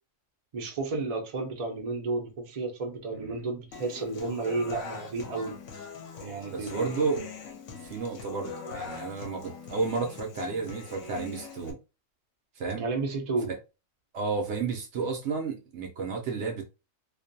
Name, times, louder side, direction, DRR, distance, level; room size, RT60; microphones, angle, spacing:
voice 1, 0.5-5.5 6.2-6.9 12.8-13.5, right 3 dB, 45° right, 0.5 m, -32 dB
Human voice / Acoustic guitar, 3.7-11.7, left 4 dB, 70° left, 0.9 m, -42 dB
voice 2, 6.5-7.2 7.8-11.8 12.6-12.9 13.5-13.6 14.1-16.6, right 4 dB, 65° right, 0.8 m, -32 dB
2.4 x 2.1 x 2.6 m
omnidirectional pair, 1.4 m